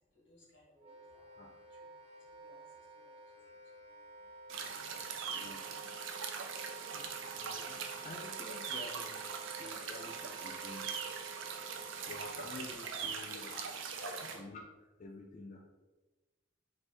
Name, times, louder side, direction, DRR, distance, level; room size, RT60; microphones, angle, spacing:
voice 1, 0.1-1.8 2.3-2.6 2.9-3.1 3.9-4.0 4.6-5.8 6.4-6.7 14.0-14.1, equal, 80° left, -3 dB, 1.4 m, -56 dB
Wind instrument woodwind instrument, 0.8-12.7, right 5 dB, 30° right, 0.5 m, -51 dB
sound 1, 4.5-14.4, right 6 dB, 90° right, 0.5 m, -42 dB
voice 2, 5.3-5.7 6.9-11.0 12.1-13.7 14.3-14.6 15.0-15.6, left 2 dB, 40° left, 0 dB, 0.3 m, -49 dB
3.4 x 3.1 x 4.2 m, 1.2 s
head